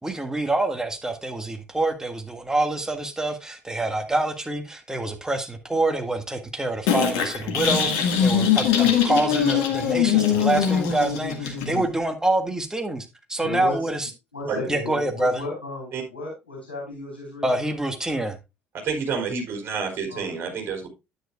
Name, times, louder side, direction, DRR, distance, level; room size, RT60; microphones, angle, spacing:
voice 1, 0.0-14.1 14.7-15.4 17.4-18.4, right 2 dB, 10° right, 1.7 m, -26 dB
sound 1, 6.9-11.9, left 8 dB, 65° left, 1.7 m, -22 dB
voice 2, 13.4-13.7 14.3-17.7 20.1-20.3, left 2 dB, 85° left, 3.3 m, -34 dB
voice 3, 18.7-20.9, right 5 dB, 45° right, 4.4 m, -29 dB
10.0 x 9.1 x 2.3 m
figure-of-eight pair, 55°, 6 cm